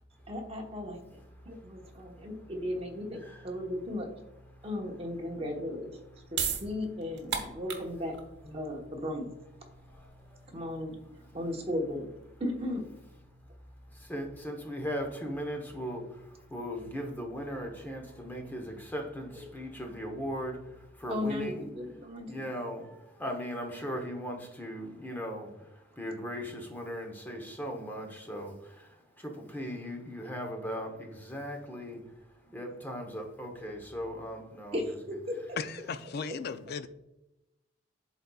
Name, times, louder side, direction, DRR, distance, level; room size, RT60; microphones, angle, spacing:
voice 1, 0.3-1.2 1.4-4.1 4.6-5.9 6.3-8.1 8.4-9.3 10.5-11.0 11.3-12.1 12.4-12.9 21.1-22.5 34.7-35.6, left 1 dB, 30° right, 1 dB, 1.1 m, -36 dB
sound 1, 5.9-12.6, right 7 dB, 65° right, 1.2 m, -38 dB
voice 2, 14.1-16.0 16.5-20.6 21.0-21.7 22.3-22.9 23.2-25.5 26.0-28.5 29.2-32.0 32.5-35.0, equal, 10° left, 2 dB, 1.0 m, -38 dB
voice 3, 35.6-36.9, left 5 dB, 55° left, 11 dB, 0.4 m, -36 dB
11.5 x 4.1 x 2.3 m, 0.91 s
head